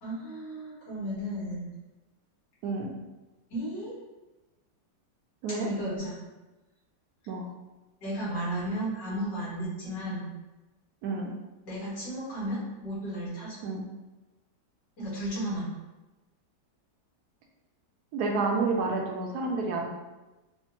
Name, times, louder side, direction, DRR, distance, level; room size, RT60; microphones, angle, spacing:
voice 1, 0.0-1.7 3.5-3.9 5.6-6.2 8.0-10.3 11.7-13.6 15.0-15.7, right 1 dB, 90° left, -8 dB, 2.4 m, -34 dB
voice 2, 2.6-2.9 5.4-5.7 7.3-7.5 11.0-11.4 13.6-13.8 18.1-19.9, right 3 dB, 70° right, 1 dB, 1.0 m, -29 dB
5.0 x 2.6 x 2.7 m, 1.1 s
omnidirectional pair, 1.9 m